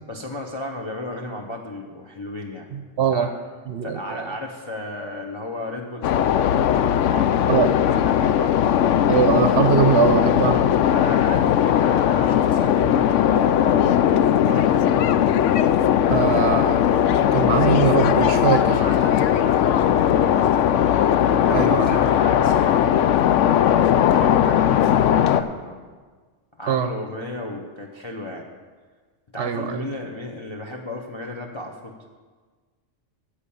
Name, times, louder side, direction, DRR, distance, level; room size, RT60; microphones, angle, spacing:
voice 1, 0.1-2.7 3.1-3.3 3.8-8.6 10.9-15.2 18.6-20.7 21.3-25.8 26.6-28.5 29.3-32.1, left 1 dB, 25° left, 0 dB, 0.8 m, -34 dB
voice 2, 3.0-3.3 3.7-4.3 7.5-7.7 9.1-10.7 16.1-18.8 21.5-22.0 26.7-26.9 29.4-29.8, right 7 dB, 60° right, 9 dB, 0.8 m, -22 dB
sound 1, 6.0-25.4, left 10 dB, 75° left, 0.9 m, -18 dB
14.5 x 5.1 x 8.6 m, 1.4 s
omnidirectional pair, 1.3 m